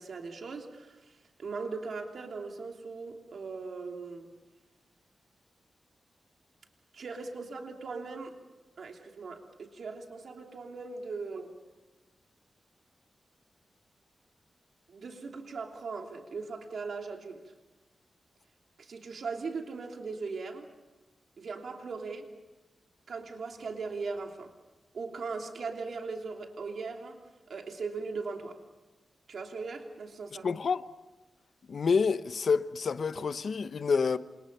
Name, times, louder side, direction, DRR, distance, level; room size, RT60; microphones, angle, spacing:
voice 1, 0.0-4.3 6.9-8.3 8.8-11.5 14.9-17.5 18.8-20.7 21.4-22.3 23.1-24.5 24.9-27.2 27.5-28.6 29.3-30.5, right 4 dB, 65° right, 3.1 m, -39 dB
voice 2, 30.4-30.8 31.7-34.2, left 5 dB, 55° left, 0.9 m, -28 dB
29.0 x 27.5 x 5.7 m
wide cardioid pair, 175°, 0 cm